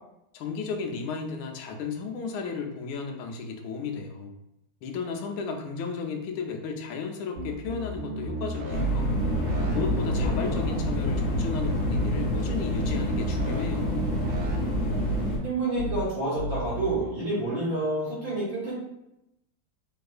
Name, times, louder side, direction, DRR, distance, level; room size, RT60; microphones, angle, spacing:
voice 1, 0.3-4.3 4.8-9.2 9.7-14.1, left 5 dB, 90° left, 3 dB, 1.4 m, -34 dB
sound 1, 7.4-8.8 9.1-10.4 10.9-11.2 11.5-13.6 13.9-15.2 15.7-16.0 16.3-16.9, equal, 75° right, 1.3 m, -34 dB
sound 2, 8.7-15.4, equal, 45° left, 0.9 m, -27 dB
voice 2, 10.4-10.8 15.4-18.7, right 2 dB, 50° right, -7 dB, 1.7 m, -29 dB
3.5 x 3.2 x 2.3 m, 0.85 s
omnidirectional pair, 2.2 m